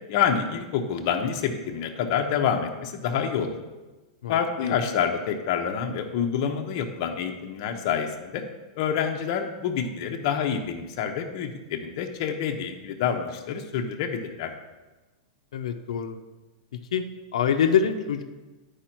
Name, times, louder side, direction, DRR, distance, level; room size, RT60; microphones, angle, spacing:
voice 1, 0.1-3.6 4.3-8.4 8.7-14.5, left 7 dB, 40° left, 4 dB, 0.8 m, -27 dB
voice 2, 15.5-16.2 16.9-17.1 17.3-18.2, left 7 dB, 90° left, 6 dB, 0.6 m, -24 dB
9.9 x 4.9 x 4.5 m, 1.2 s
supercardioid pair, 170°, 3 cm